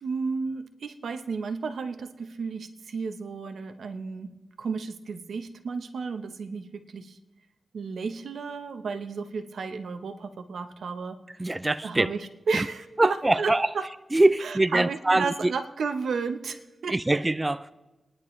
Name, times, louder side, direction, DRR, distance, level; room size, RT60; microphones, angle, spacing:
voice 1, 0.0-4.3 4.6-7.2 7.7-11.2 11.8-13.8 14.4-16.9, right 4 dB, 85° right, 0.9 m, -33 dB
voice 2, 11.4-12.1 12.5-12.7 13.0-13.7 14.1-15.5 16.9-17.7, right 2 dB, 20° right, 0.4 m, -23 dB
30.0 x 10.5 x 3.2 m
cardioid pair, 75°, 0 cm